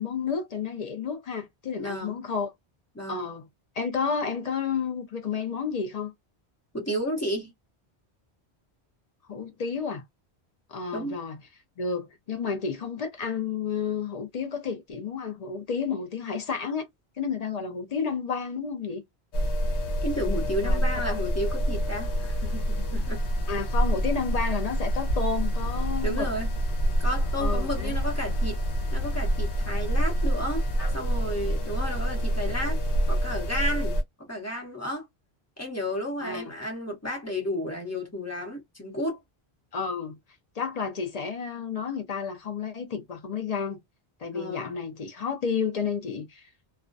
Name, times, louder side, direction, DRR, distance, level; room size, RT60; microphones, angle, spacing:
voice 1, 0.0-2.5 3.1-3.5 3.8-6.1 9.3-10.0 10.7-11.4 11.8-16.9 17.2-19.0 20.6-21.2 23.5-26.3 27.4-28.0 36.2-36.4 39.7-40.2 40.6-43.8 44.2-46.5, left 6 dB, 50° left, 0.5 m, -31 dB
voice 2, 1.8-2.1 2.9-3.2 6.7-7.5 10.9-11.2 20.0-23.2 26.0-26.5 27.0-28.6 28.9-30.6 30.9-32.8 33.1-34.0 34.3-35.0 35.6-39.2 44.3-44.8, equal, 15° left, 0.8 m, -32 dB
sound 1, 19.3-34.0, equal, 85° left, 1.0 m, -27 dB
2.3 x 2.1 x 2.5 m
omnidirectional pair, 1.1 m